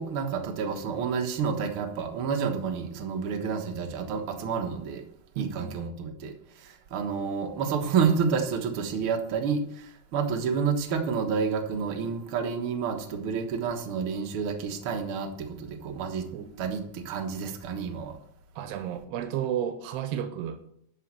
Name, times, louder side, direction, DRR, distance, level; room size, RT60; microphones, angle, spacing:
voice 1, 0.0-5.0 5.3-16.3 16.6-18.2, right 6 dB, 75° right, 4 dB, 1.2 m, -29 dB
voice 2, 5.4-5.8 16.3-16.5 18.6-20.6, right 9 dB, 90° right, 8 dB, 2.9 m, -32 dB
13.0 x 5.3 x 7.4 m, 0.71 s
omnidirectional pair, 4.6 m